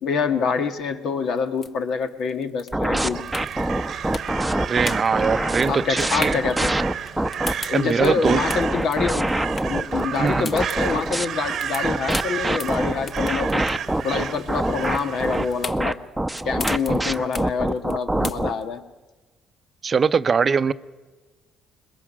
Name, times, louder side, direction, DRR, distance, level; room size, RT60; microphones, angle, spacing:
voice 1, 0.0-3.2 5.7-6.7 7.7-9.3 9.7-13.7 14.0-16.0 16.4-18.8, left 5 dB, 70° left, 8 dB, 1.4 m, -26 dB
sound 1, 1.3-18.8, left 4 dB, 40° left, 0.9 m, -37 dB
sound 2, 2.7-7.5 8.0-11.3 11.8-18.5, right 1 dB, 5° right, 0.8 m, -25 dB
Crow, 3.0-15.7, right 8 dB, 60° right, 0.9 m, -33 dB
voice 2, 4.7-6.4 7.7-8.4 10.1-10.5 19.8-20.7, right 5 dB, 40° right, 13 dB, 0.6 m, -21 dB
21.5 x 20.5 x 6.2 m, 1.2 s
supercardioid pair, 85°, 0 cm